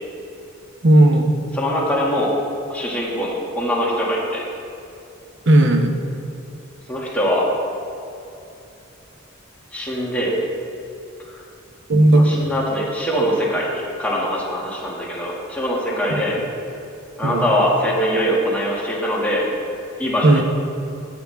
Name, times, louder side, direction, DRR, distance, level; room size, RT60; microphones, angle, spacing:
voice 1, 0.8-1.3 5.5-5.9 11.9-12.3 16.1-16.2 17.2-17.4 20.2-20.4, right 1 dB, 60° right, 5 dB, 0.9 m, -14 dB
voice 2, 1.5-2.3 2.7-4.5 6.9-7.5 9.7-10.3 11.2-11.4 12.1-16.4 17.2-19.4 20.0-20.4, equal, 5° left, -5 dB, 2.1 m, -22 dB
15.0 x 7.7 x 3.5 m, 2.7 s
head